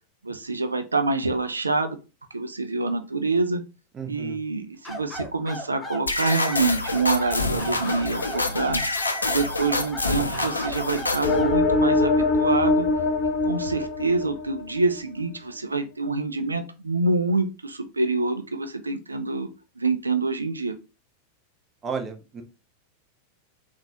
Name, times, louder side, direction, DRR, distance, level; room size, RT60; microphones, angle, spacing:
voice 1, 0.2-2.0 2.3-3.6 4.1-8.8 9.3-12.9 13.4-19.5 19.8-20.8, right 3 dB, 80° right, 8 dB, 0.3 m, -26 dB
voice 2, 3.9-4.4 21.8-22.4, right 5 dB, 20° right, 6 dB, 0.6 m, -33 dB
sound 1, 4.8-11.6, equal, 15° left, 0.8 m, -36 dB
sound 2, 6.1-11.4, left 2 dB, 80° left, 0.4 m, -27 dB
sound 3, 11.2-14.8, left 2 dB, 45° left, 0.9 m, -22 dB
3.8 x 2.4 x 2.7 m, 0.30 s
figure-of-eight pair, 90°, 0 cm